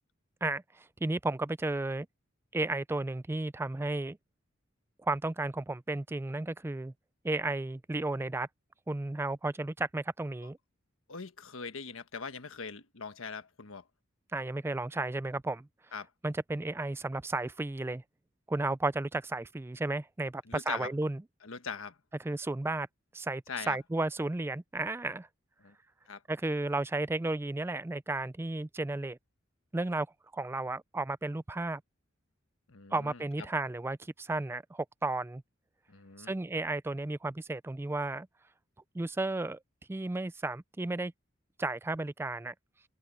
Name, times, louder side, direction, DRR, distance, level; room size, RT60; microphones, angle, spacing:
voice 1, 0.4-2.1 2.5-4.2 5.0-6.9 7.2-8.5 8.9-10.6 14.3-15.7 16.2-18.0 18.5-21.2 22.2-22.9 23.1-25.3 26.3-29.2 29.7-30.1 30.3-31.8 32.9-35.4 36.2-38.3 38.9-39.6 39.9-41.1 41.6-42.5, right 2 dB, 10° right, 0.3 m, -33 dB
voice 2, 11.1-13.9 15.9-16.1 20.4-20.9 21.4-22.0 23.5-23.8 25.6-25.7 26.1-26.2 32.7-33.2 35.9-36.3, left 5 dB, 90° left, 1.4 m, -41 dB
head